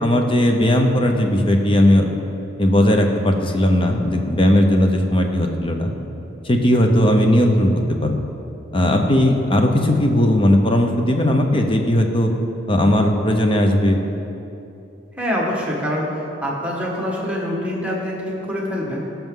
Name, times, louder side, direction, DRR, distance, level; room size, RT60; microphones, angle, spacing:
voice 1, 0.0-2.1 2.6-5.9 6.4-7.7 8.0-8.2 8.7-12.3 12.7-14.0, left 1 dB, 30° left, 3 dB, 0.8 m, -17 dB
voice 2, 15.2-16.0 16.4-19.0, equal, 5° right, -4 dB, 1.4 m, -25 dB
16.5 x 6.0 x 3.8 m, 2.8 s
head